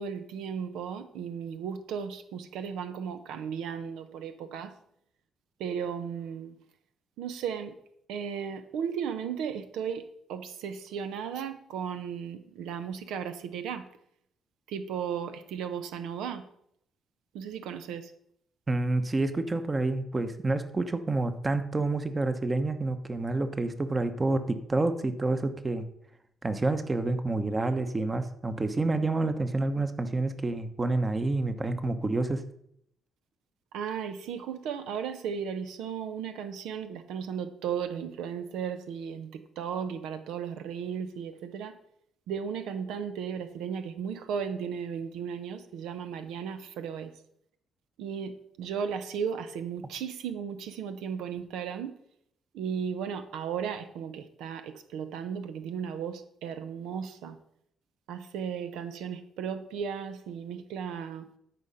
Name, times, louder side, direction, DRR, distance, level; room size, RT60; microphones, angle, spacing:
voice 1, 0.0-4.7 5.6-6.5 7.2-7.7 8.1-13.8 14.7-16.4 17.3-18.1 33.7-41.7 42.3-47.1 48.0-51.9 52.5-57.4 58.1-61.3, right 7 dB, 90° right, 10 dB, 0.7 m, -35 dB
voice 2, 18.7-25.8 26.4-32.4, right 2 dB, 25° right, 10 dB, 1.0 m, -28 dB
12.5 x 5.1 x 5.6 m, 0.72 s
cardioid pair, 90°, 0 cm